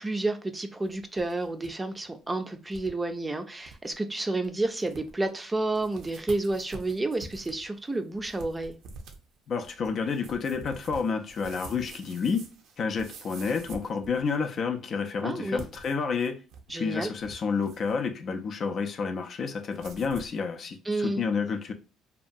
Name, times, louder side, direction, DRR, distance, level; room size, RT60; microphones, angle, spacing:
voice 1, 0.0-8.8 15.2-15.6 16.7-17.1 20.9-21.2, right 2 dB, 20° right, 0.4 m, -30 dB
sound 1, 0.9-1.7 2.0-2.1 2.7-2.9 3.3-3.4 3.6-3.9 4.4-4.5 4.8-5.3 5.7-14.6 15.4-16.7 17.0-18.0 19.7-20.4, right 4 dB, 75° right, 0.5 m, -47 dB
voice 2, 9.5-12.4 12.8-16.4 16.7-21.7, left 5 dB, 55° left, 0.4 m, -30 dB
2.7 x 2.3 x 2.5 m
supercardioid pair, 75°, 0 cm